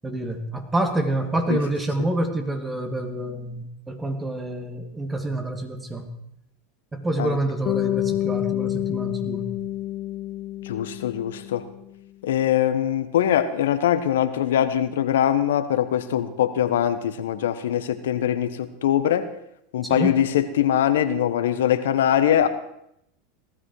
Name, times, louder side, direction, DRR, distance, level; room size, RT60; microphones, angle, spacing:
voice 1, 0.0-6.1 6.9-9.5 19.8-20.2, right 1 dB, 15° right, 6 dB, 2.3 m, -27 dB
Bass guitar, 7.7-11.9, left 14 dB, 45° left, 0.5 m, -28 dB
voice 2, 10.6-11.7 12.2-19.3 19.7-22.5, left 10 dB, 80° left, 10 dB, 1.2 m, -22 dB
18.0 x 14.0 x 4.8 m, 0.77 s
hypercardioid pair, 105°, 0 cm